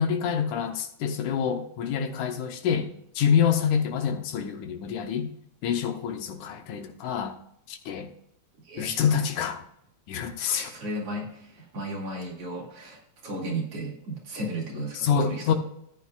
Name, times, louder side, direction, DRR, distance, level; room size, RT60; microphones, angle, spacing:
voice 1, 0.0-2.9 3.2-5.3 5.6-7.4 7.7-8.1 8.8-9.6 10.1-10.7 15.0-15.5, left 7 dB, 80° left, 2.3 m, -26 dB
voice 2, 8.6-9.2 10.5-15.5, right 1 dB, 50° right, 3.3 m, -35 dB
14.0 x 9.1 x 2.4 m
omnidirectional pair, 3.6 m